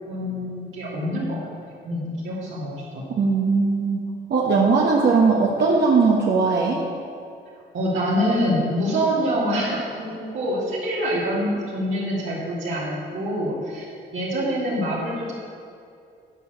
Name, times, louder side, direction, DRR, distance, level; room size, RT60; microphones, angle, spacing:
voice 1, 0.1-1.4 1.8-3.0 7.7-13.9 14.1-15.3, equal, 75° right, -8 dB, 2.8 m, -25 dB
voice 2, 3.1-4.0 4.3-6.8, right 4 dB, 60° right, -3 dB, 1.3 m, -19 dB
10.5 x 4.7 x 7.9 m, 2.5 s
cardioid pair, 90°, 20 cm